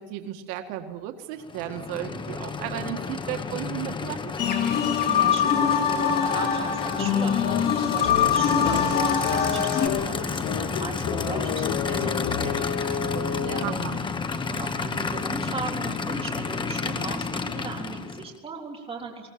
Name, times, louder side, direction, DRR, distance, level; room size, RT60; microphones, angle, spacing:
voice 1, 0.0-4.3 13.6-14.0, right 12 dB, 75° right, 5 dB, 1.8 m, -34 dB
Aircraft / Idling, 1.4-18.4, left 4 dB, 15° left, 1.0 m, -31 dB
sound 1, 4.4-9.9, left 7 dB, 30° left, 3.1 m, -23 dB
voice 2, 5.1-13.7 14.5-19.3, right 4 dB, 20° right, 0 dB, 3.6 m, -37 dB
sound 2, 7.4-13.9, left 9 dB, 75° left, 2.2 m, -31 dB
22.0 x 17.5 x 8.7 m, 1.3 s
cardioid pair, 160°, 30 cm